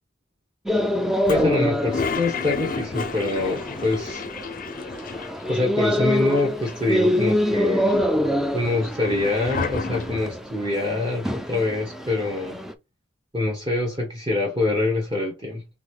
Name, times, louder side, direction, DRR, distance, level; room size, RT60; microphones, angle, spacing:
sound 1, 0.7-12.7, left 1 dB, ahead, 0.4 m, -26 dB
Toilet flush, 1.2-5.6 5.9-6.0 6.2-7.0 7.5-10.4, left 4 dB, 50° left, 0.5 m, -32 dB
voice 1, 1.3-4.2 5.5-7.9 8.5-12.6 13.3-15.6, left 2 dB, 30° right, 1.1 m, -25 dB
3.8 x 3.2 x 3.5 m
head